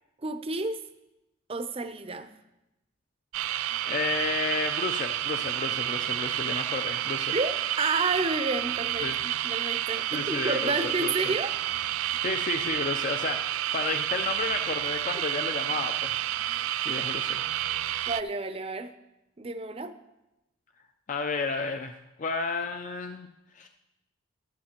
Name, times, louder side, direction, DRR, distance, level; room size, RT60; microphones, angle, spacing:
voice 1, 0.2-0.8 1.5-2.3 7.3-11.5 18.1-18.9 19.4-20.0, right 3 dB, 25° right, 10 dB, 0.5 m, -30 dB
sound 1, 3.3-18.2, right 13 dB, 75° right, 0.3 m, -30 dB
voice 2, 3.8-7.3 9.0-9.1 10.1-11.3 12.2-16.2 16.8-17.4 21.1-21.9 22.2-23.3 23.5-23.7, left 4 dB, 35° left, 6 dB, 0.5 m, -32 dB
15.0 x 12.5 x 2.9 m, 0.94 s
head